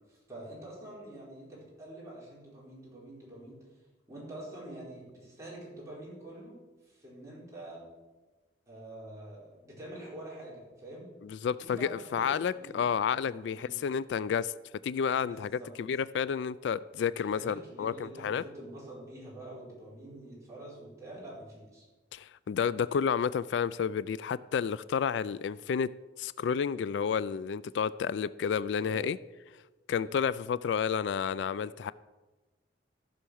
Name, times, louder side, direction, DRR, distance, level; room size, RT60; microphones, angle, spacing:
voice 1, 0.1-3.6 4.1-7.8 8.7-11.1 11.6-12.9 13.2-13.7 15.2-15.7 17.2-21.8 28.8-29.0 30.0-30.1, right 1 dB, 15° right, -6 dB, 4.5 m, -46 dB
voice 2, 11.2-14.5 14.8-15.5 15.8-18.4 22.1-25.9 26.2-29.2 29.9-31.9, left 7 dB, 65° left, 18 dB, 0.3 m, -30 dB
14.5 x 5.7 x 6.3 m, 1.2 s
head